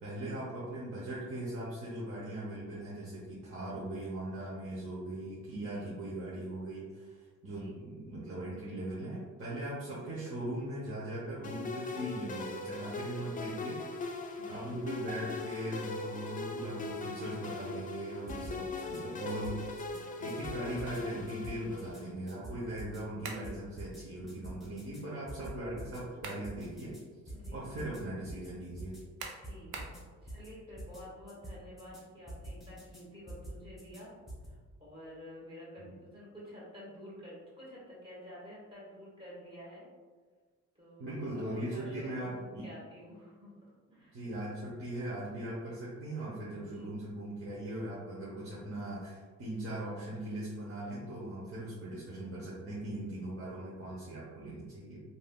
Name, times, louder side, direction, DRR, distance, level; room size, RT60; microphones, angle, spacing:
voice 1, 0.0-14.1 14.5-27.0 27.5-29.0 35.8-35.9 41.0-42.7 44.1-55.0, right 1 dB, 50° right, -7 dB, 0.8 m, -40 dB
voice 2, 7.4-7.8 10.1-10.3 14.4-14.7 27.3-27.6 29.4-29.9 30.2-34.1 34.5-39.8 40.8-43.5 43.9-44.2 46.6-46.9, equal, 15° right, -7 dB, 1.5 m, -50 dB
sound 1, 11.4-22.1, left 3 dB, 30° left, 0.4 m, -40 dB
sound 2, 18.3-19.0 19.3-20.0 20.3-21.0 21.3-22.0 22.3-23.0 23.3-24.0 24.3-25.0 25.3-26.0 26.3-27.0 27.3-28.0 28.3-28.5 28.8-29.0 29.3-30.0 30.3-30.5 30.8-31.0 31.3-32.0 32.3-33.0 33.3-34.0 34.3-34.5, right 1 dB, ahead, 1.0 m, -46 dB
sound 3, 23.2-23.5 25.9-26.5 27.0-27.1 29.2-30.0, right 4 dB, 85° right, 0.5 m, -43 dB
3.3 x 2.6 x 2.2 m, 1.5 s
cardioid pair, 90°, 30 cm